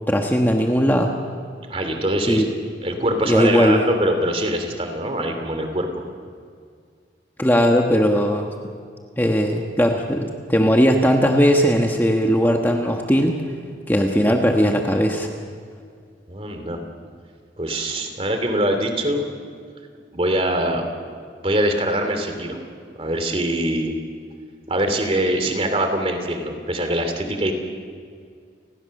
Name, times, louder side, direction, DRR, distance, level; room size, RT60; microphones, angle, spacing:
voice 1, 0.1-1.1 2.3-2.5 3.2-3.8 7.4-8.5 9.2-13.4 13.9-15.3, equal, 10° left, 2 dB, 1.3 m, -18 dB
voice 2, 1.7-2.5 2.8-6.0 16.3-16.8 17.6-19.3 20.1-20.8 21.4-22.6 23.0-23.9 24.7-27.5, right 1 dB, 30° right, 6 dB, 2.8 m, -23 dB
29.5 x 19.5 x 6.6 m, 2.1 s
head